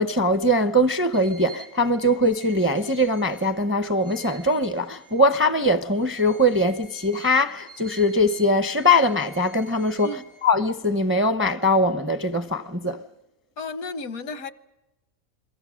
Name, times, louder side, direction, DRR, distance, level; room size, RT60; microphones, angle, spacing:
voice 1, 0.0-10.1 10.4-13.0, left 1 dB, 15° right, 0.5 m, -21 dB
sound 1, 1.1-5.5 5.9-10.8, right 5 dB, 90° right, 3.7 m, -48 dB
voice 2, 13.6-14.5, left 3 dB, 85° left, 1.5 m, -33 dB
29.0 x 22.0 x 6.3 m
omnidirectional pair, 1.4 m